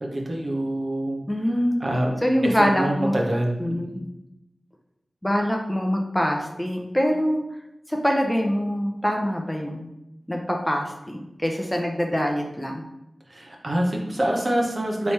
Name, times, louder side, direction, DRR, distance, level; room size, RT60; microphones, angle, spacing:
voice 1, 0.0-1.2 1.8-2.1 2.4-4.0 13.3-15.1, right 1 dB, 45° right, 0 dB, 0.9 m, -26 dB
voice 2, 1.3-1.8 2.2-3.2 3.6-4.0 5.2-7.4 7.9-9.9 10.3-12.8, equal, 10° left, 2 dB, 0.7 m, -24 dB
3.4 x 3.1 x 4.2 m, 0.89 s
cardioid pair, 50°, 0 cm